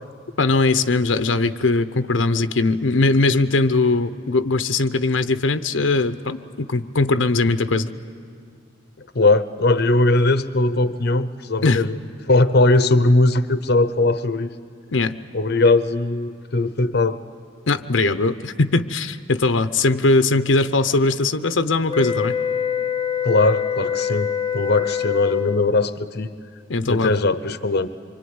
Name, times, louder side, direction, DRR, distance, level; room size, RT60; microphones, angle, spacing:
voice 1, 0.4-7.9 11.6-11.8 14.9-15.2 17.7-22.4 26.7-27.1, left 3 dB, 85° left, 10 dB, 0.8 m, -20 dB
voice 2, 9.1-12.0 12.3-14.5 15.3-17.2 23.2-26.3 26.9-27.9, left 2 dB, 55° left, 12 dB, 0.8 m, -19 dB
sound 1, 21.9-25.8, left 8 dB, 20° left, 0.8 m, -25 dB
25.5 x 24.5 x 9.6 m, 2.1 s
head